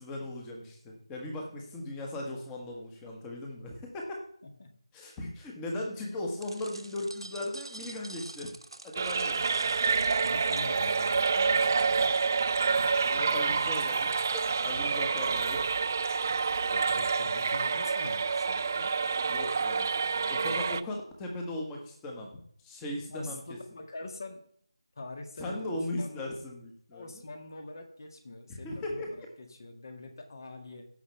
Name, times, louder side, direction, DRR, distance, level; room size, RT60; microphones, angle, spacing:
voice 1, 0.0-4.2 4.9-8.5 8.8-9.4 13.1-15.6 16.3-16.5 19.3-19.9 20.3-22.3 22.6-23.4 25.4-27.2 28.5-29.1, left 1 dB, 10° left, 0 dB, 1.4 m, -38 dB
voice 2, 4.4-4.7 9.4-9.6 10.2-12.2 16.7-18.9 20.1-20.6 23.1-24.4 25.0-26.3 26.9-30.9, left 2 dB, 45° left, 5 dB, 1.8 m, -44 dB
sound 1, 6.4-12.4, right 2 dB, 70° right, 1.4 m, -47 dB
sound 2, 9.0-20.8, right 5 dB, 35° right, 0.3 m, -28 dB
16.5 x 5.8 x 3.4 m, 0.62 s
figure-of-eight pair, 165°, 3 cm